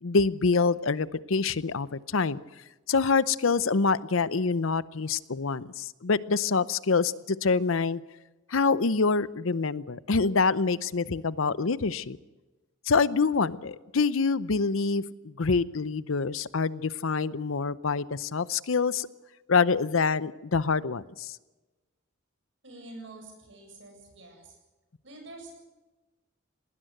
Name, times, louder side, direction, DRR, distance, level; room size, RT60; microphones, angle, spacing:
voice 1, 0.0-2.4 2.9-8.0 8.5-12.2 12.9-19.1 19.5-21.4, left 4 dB, 80° left, 18 dB, 0.7 m, -26 dB
voice 2, 22.6-24.5 25.0-25.5, right 2 dB, 60° right, 3 dB, 7.8 m, -46 dB
20.0 x 19.0 x 7.9 m, 1.1 s
head